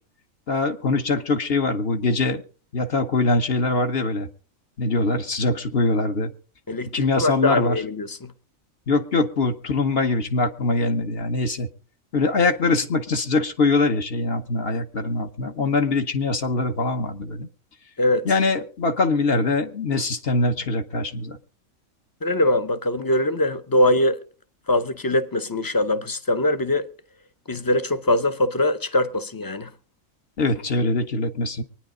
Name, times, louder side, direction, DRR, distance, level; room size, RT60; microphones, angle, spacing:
voice 1, 0.5-2.4 2.7-4.3 4.8-6.3 6.9-7.8 8.9-11.7 12.1-17.5 18.2-21.4 30.4-31.6, left 3 dB, 50° left, 1.2 m, -23 dB
voice 2, 6.7-8.3 18.0-18.3 22.2-24.2 24.7-26.9 27.5-29.7, left 1 dB, 25° left, 0.6 m, -22 dB
24.0 x 9.9 x 3.8 m
omnidirectional pair, 1.4 m